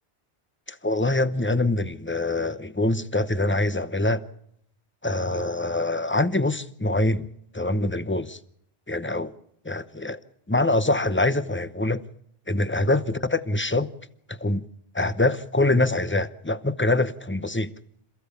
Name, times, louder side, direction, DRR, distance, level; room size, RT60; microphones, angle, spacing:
voice 1, 0.7-4.2 5.0-7.3 7.5-8.4 8.9-9.3 9.6-10.2 10.5-12.0 12.5-13.9 14.3-14.6 14.9-17.7, left 2 dB, 15° left, 0.8 m, -24 dB
27.5 x 15.5 x 6.9 m
omnidirectional pair, 1.0 m